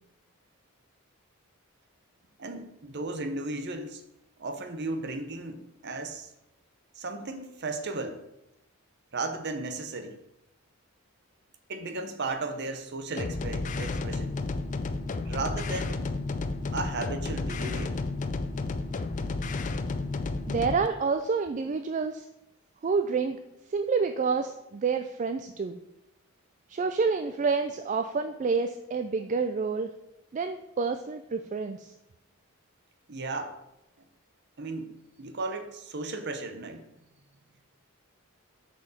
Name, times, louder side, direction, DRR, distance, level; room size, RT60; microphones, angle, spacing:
voice 1, 2.4-4.0 4.4-6.3 7.0-8.2 9.1-10.2 11.7-14.3 15.3-16.1 16.7-18.0 33.1-33.6 34.0-34.1 34.6-36.8, right 3 dB, 50° right, 8 dB, 0.8 m, -35 dB
sound 1, 13.2-20.9, left 3 dB, 35° left, 0.4 m, -32 dB
voice 2, 20.5-22.3 22.8-23.4 23.7-25.8 26.7-29.9 30.3-31.9, right 5 dB, 35° right, 7 dB, 0.3 m, -28 dB
6.6 x 5.0 x 4.9 m, 0.87 s
head